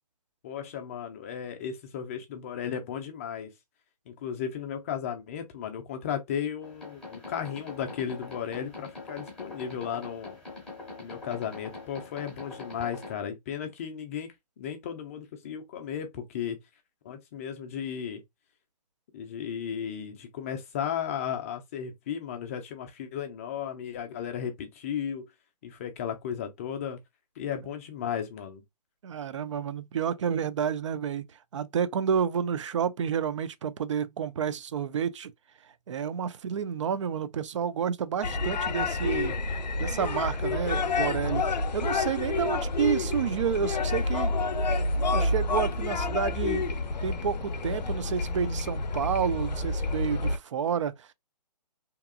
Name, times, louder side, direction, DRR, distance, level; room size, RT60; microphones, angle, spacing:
voice 1, 0.4-3.5 4.1-10.4 11.0-16.6 17.0-18.2 19.1-25.3 25.6-27.0 27.4-28.6, left 8 dB, 20° left, 0.4 m, -35 dB
sound 1, 6.6-13.1, left 3 dB, 5° left, 1.2 m, -43 dB
voice 2, 29.0-31.3 31.5-35.3 35.9-39.3 39.8-41.4 41.7-44.4 45.1-46.6 47.0-51.1, right 8 dB, 45° right, 0.4 m, -30 dB
sound 2, 38.2-50.4, left 3 dB, 85° left, 0.5 m, -29 dB
2.9 x 2.3 x 2.3 m
hypercardioid pair, 145°, 21 cm